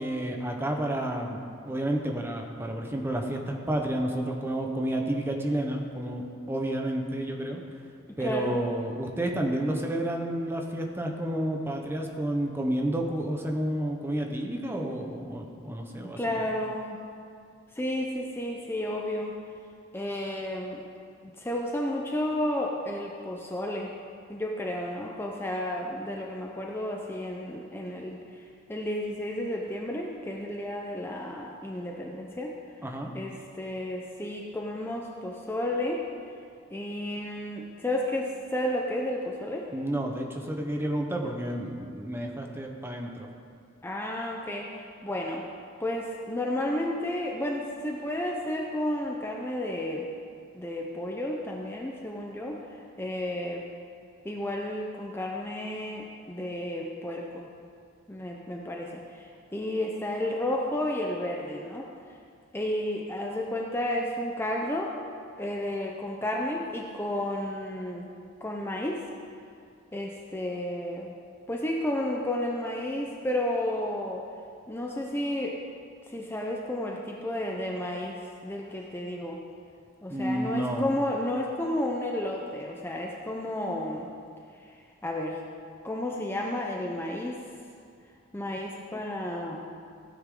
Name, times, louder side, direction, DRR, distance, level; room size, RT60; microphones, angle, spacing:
voice 1, 0.0-7.6 8.2-16.4 32.8-33.1 39.7-43.3 80.1-80.8, right 1 dB, 10° right, 2 dB, 1.0 m, -30 dB
voice 2, 8.2-8.6 16.2-17.0 17.7-19.3 19.9-20.8 21.4-23.9 24.3-32.5 33.1-36.0 36.7-39.7 43.8-45.4 45.8-50.1 50.5-52.6 53.0-53.6 54.2-57.5 58.1-61.9 62.5-64.9 65.4-68.1 68.4-69.0 69.9-71.1 71.5-74.2 74.7-75.6 76.1-79.4 80.0-84.1 85.0-85.4 85.8-87.4 88.3-89.6, left 1 dB, 10° left, -1 dB, 0.7 m, -32 dB
16.0 x 9.6 x 3.8 m, 2.3 s
head